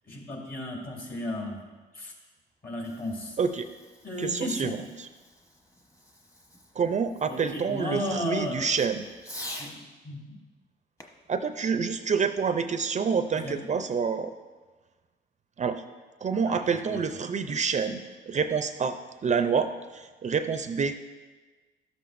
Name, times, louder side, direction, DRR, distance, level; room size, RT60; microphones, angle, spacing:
voice 1, 0.1-1.6 1.9-2.1 2.6-3.4 4.0-4.7 7.3-8.7 10.0-10.4 13.3-13.6 16.4-16.6 16.9-17.0, left 1 dB, 45° left, -2 dB, 2.7 m, -34 dB
Fireworks, 2.5-9.8 11.0-12.6, left 1 dB, 15° left, 1.0 m, -47 dB
voice 2, 3.4-3.7 4.2-5.1 6.8-9.1 11.3-14.3 15.6-15.8 16.2-21.0, right 6 dB, 35° right, 9 dB, 0.4 m, -28 dB
12.5 x 7.7 x 2.5 m, 1.3 s
cardioid pair, 90°, 20 cm